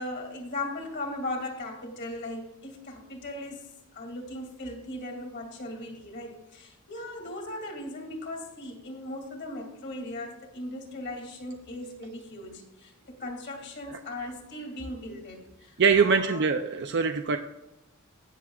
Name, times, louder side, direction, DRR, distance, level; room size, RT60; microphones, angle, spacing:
voice 1, 0.0-3.7 3.9-16.4, left 1 dB, 55° left, 2 dB, 2.6 m, -38 dB
voice 2, 15.8-17.4, right 5 dB, 55° right, 6 dB, 0.5 m, -23 dB
18.0 x 7.1 x 2.4 m, 0.96 s
head